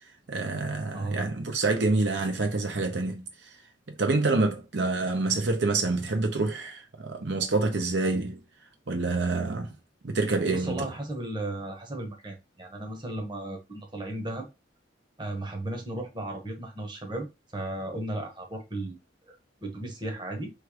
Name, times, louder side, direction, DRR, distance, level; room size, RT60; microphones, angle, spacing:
voice 1, 0.3-3.2 4.0-8.4 8.9-9.7 10.0-10.9, right 3 dB, 65° right, 0.8 m, -27 dB
voice 2, 0.9-1.3 10.5-14.5 15.2-17.3 17.5-19.0 19.6-20.5, right 1 dB, 25° right, 1.0 m, -35 dB
3.2 x 3.1 x 4.7 m
head